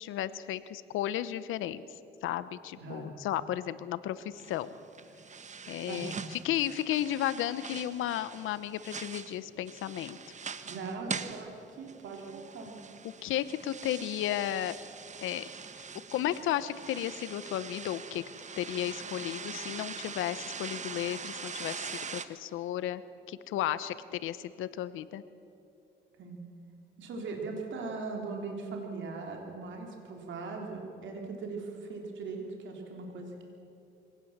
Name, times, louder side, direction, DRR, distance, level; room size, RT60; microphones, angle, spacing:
voice 1, 0.0-1.8 2.2-4.7 5.7-10.2 13.0-14.8 15.2-15.5 15.8-15.9 16.1-18.2 18.6-23.0 23.3-25.2, left 12 dB, 85° left, 15 dB, 0.9 m, -34 dB
voice 2, 2.8-3.1 5.9-6.3 10.7-12.7 26.2-26.4 27.0-33.4, right 3 dB, 70° right, 1 dB, 3.4 m, -40 dB
sound 1, 4.3-22.2, right 6 dB, 35° right, 1.1 m, -43 dB
24.0 x 18.0 x 7.4 m, 2.8 s
cardioid pair, 90°, 20 cm